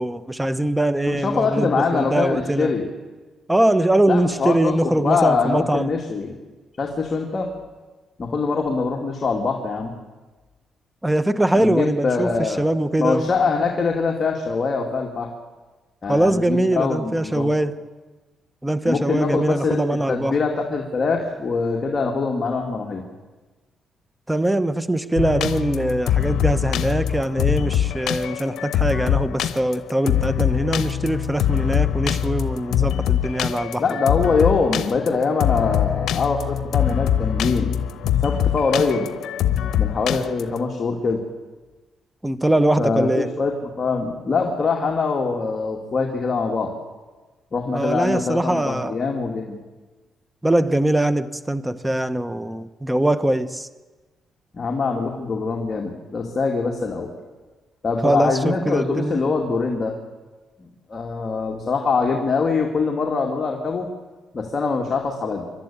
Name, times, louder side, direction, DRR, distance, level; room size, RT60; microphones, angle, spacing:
voice 1, 0.0-2.7 3.5-5.9 11.0-13.3 16.1-17.8 18.6-20.4 24.3-34.0 42.2-43.3 47.7-48.9 50.4-53.7 58.0-59.2, right 1 dB, 10° right, 13 dB, 1.0 m, -22 dB
voice 2, 1.1-2.9 4.1-6.3 6.8-7.5 8.2-9.9 11.5-12.6 13.0-15.3 16.0-17.5 18.9-23.0 33.8-37.7 38.2-39.1 39.8-41.2 42.8-46.7 47.5-49.6 54.5-57.1 57.8-60.0 60.6-63.9 64.3-65.5, left 4 dB, 40° left, 1 dB, 2.4 m, -23 dB
sound 1, 25.2-40.6, left 10 dB, 85° left, 0.9 m, -23 dB
27.5 x 12.5 x 8.8 m, 1.3 s
cardioid pair, 105°, 0 cm